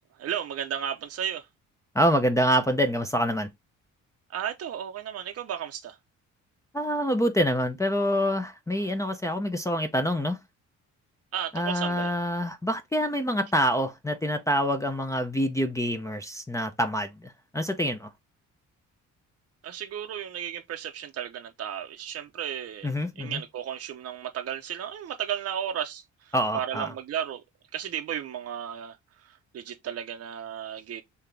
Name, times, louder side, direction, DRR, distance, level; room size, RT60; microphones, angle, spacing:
voice 1, 0.2-1.5 4.3-6.0 11.3-12.1 19.6-27.4 27.7-29.0 29.3-31.0, right 9 dB, 55° right, 0.7 m, -34 dB
voice 2, 1.9-3.5 6.7-10.4 11.5-18.1 22.8-23.4 26.3-26.9, equal, 10° left, 0.5 m, -26 dB
3.7 x 2.8 x 3.3 m
cardioid pair, 90°, 30 cm